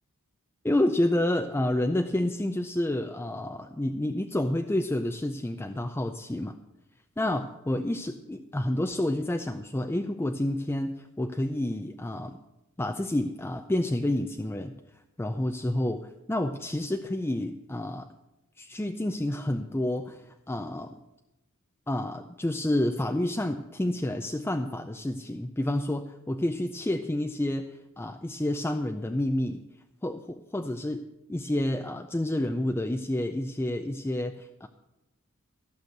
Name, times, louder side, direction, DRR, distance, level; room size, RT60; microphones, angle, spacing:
voice 1, 0.6-6.6 7.2-12.4 12.8-14.7 15.2-18.1 18.6-21.0 21.9-29.6 30.0-31.0 31.3-34.7, left 1 dB, 10° left, 6 dB, 0.4 m, -29 dB
14.5 x 6.3 x 7.9 m, 0.94 s
head